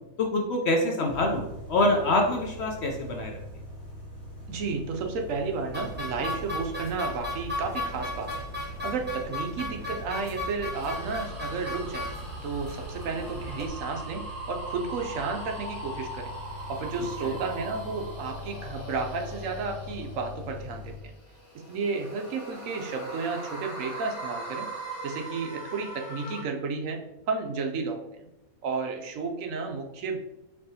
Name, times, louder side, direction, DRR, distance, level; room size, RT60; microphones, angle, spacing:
voice 1, 0.2-3.4 17.2-17.4, left 2 dB, 65° left, 1 dB, 0.7 m, -25 dB
sound 1, 1.0-21.0, left 1 dB, 40° left, 1.2 m, -42 dB
voice 2, 4.5-12.1 12.4-16.4 16.7-21.1 21.5-24.7 25.0-28.3 28.6-30.2, right 4 dB, 70° right, 4 dB, 0.9 m, -32 dB
sound 2, 5.7-13.7, left 1 dB, 10° right, 0.5 m, -36 dB
sound 3, 10.7-20.6 21.2-26.4, right 2 dB, 80° left, 1.8 m, -41 dB
4.4 x 3.4 x 2.7 m, 0.95 s
omnidirectional pair, 1.5 m